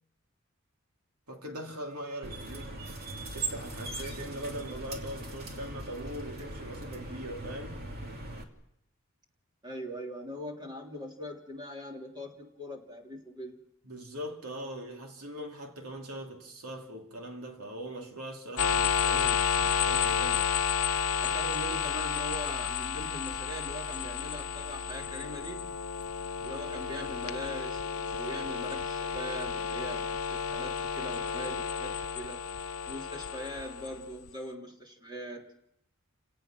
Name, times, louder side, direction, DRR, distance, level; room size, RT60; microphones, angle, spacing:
voice 1, 1.3-2.8 3.3-7.8 13.8-20.5, right 1 dB, 85° right, 2.9 m, -41 dB
sound 1, 2.2-8.4, right 2 dB, 45° right, 2.7 m, -40 dB
voice 2, 9.6-13.6 21.2-25.7 26.4-32.4 32.9-35.4, equal, 20° right, 3.4 m, -41 dB
sound 2, 18.6-34.3, left 7 dB, 70° left, 0.8 m, -31 dB
29.0 x 18.0 x 6.1 m
head